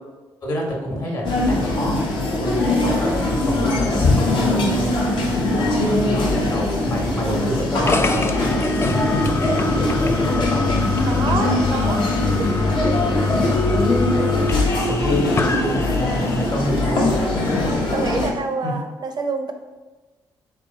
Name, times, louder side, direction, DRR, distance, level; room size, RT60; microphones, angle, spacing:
voice 1, 0.4-2.0 2.4-4.9 5.2-8.6 9.6-10.7 14.4-17.4 18.6-18.7, equal, 50° left, 0 dB, 1.1 m, -28 dB
sound 1, 1.2-18.3, left 2 dB, 65° left, 0.8 m, -21 dB
sound 2, 7.9-16.6, left 4 dB, 30° left, 0.3 m, -25 dB
voice 2, 11.0-12.5 17.9-19.5, right 4 dB, 50° right, 6 dB, 0.5 m, -27 dB
3.2 x 3.2 x 3.8 m, 1.2 s
supercardioid pair, 60°, 9 cm